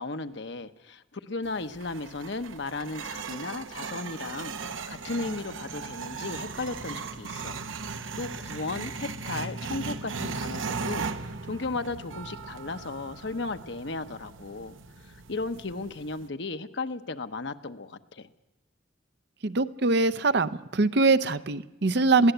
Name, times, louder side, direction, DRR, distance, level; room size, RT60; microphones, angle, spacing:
voice 1, 0.0-7.6 8.1-11.0 11.5-14.7 15.3-18.3, left 3 dB, 65° left, 9 dB, 1.0 m, -35 dB
sound 1, 1.4-16.3, right 4 dB, 90° right, 1.1 m, -38 dB
voice 2, 19.4-22.3, right 3 dB, 60° right, 13 dB, 0.7 m, -23 dB
21.5 x 16.0 x 8.0 m, 0.99 s
head